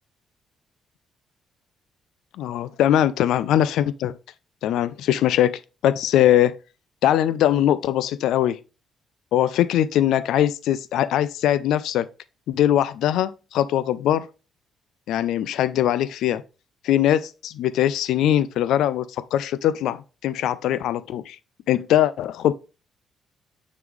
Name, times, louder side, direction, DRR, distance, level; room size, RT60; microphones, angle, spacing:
voice 1, 2.4-4.2 4.6-6.6 7.0-8.6 9.3-12.1 12.5-14.3 15.1-16.4 16.8-21.4 21.7-22.5, left 11 dB, 85° left, 0.3 m, -21 dB
9.4 x 3.1 x 3.6 m
cardioid pair, 140°, 0 cm